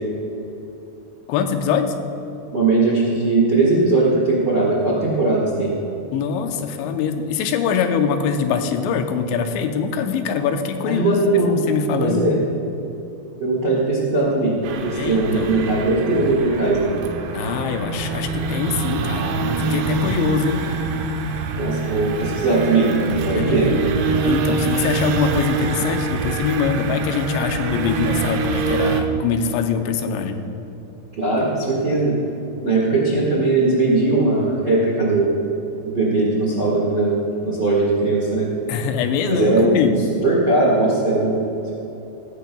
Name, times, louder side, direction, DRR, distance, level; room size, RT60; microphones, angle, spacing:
voice 1, 1.3-1.9 6.1-11.2 11.5-12.2 15.0-15.6 17.3-20.6 23.3-23.6 24.2-30.4 38.7-39.9, left 6 dB, 85° left, 6 dB, 3.0 m, -23 dB
voice 2, 2.5-5.7 10.8-11.6 12.0-12.4 13.4-17.0 21.5-22.9 23.2-23.7 31.2-32.2 32.6-35.3 35.8-37.1 37.4-38.5 39.2-39.9 40.2-41.4, right 2 dB, 50° right, -5 dB, 1.2 m, -19 dB
sound 1, 14.6-29.0, right 3 dB, 85° right, 3.0 m, -25 dB
16.5 x 14.5 x 2.3 m, 2.9 s
omnidirectional pair, 5.1 m